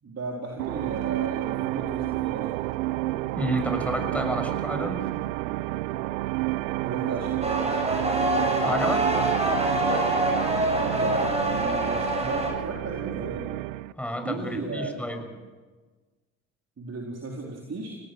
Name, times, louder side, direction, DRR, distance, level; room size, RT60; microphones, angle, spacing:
voice 1, 0.0-2.5 6.8-7.7 10.8-13.4 14.2-14.9 15.2-15.3 16.8-18.0, right 3 dB, 40° right, -1 dB, 4.3 m, -35 dB
sound 1, 0.6-13.9, right 18 dB, 90° right, 0.6 m, -30 dB
voice 2, 3.4-5.1 8.6-9.1 14.0-15.2, equal, 5° left, 5 dB, 6.2 m, -30 dB
sound 2, 7.4-12.5, right 1 dB, 15° right, 7.6 m, -25 dB
25.5 x 18.0 x 6.2 m, 1.3 s
hypercardioid pair, 55°, 38 cm